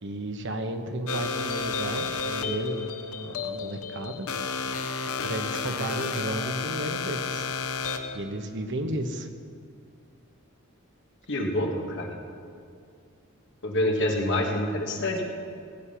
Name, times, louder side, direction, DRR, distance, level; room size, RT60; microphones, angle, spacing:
voice 1, 0.0-4.3 5.2-7.5 8.1-9.3, right 1 dB, 55° right, 6 dB, 1.1 m, -33 dB
sound 1, 1.1-8.2, left 5 dB, 85° left, 0.8 m, -31 dB
voice 2, 11.3-12.1 13.6-15.3, left 1 dB, 60° left, 1 dB, 1.9 m, -26 dB
16.0 x 8.7 x 5.8 m, 2.4 s
head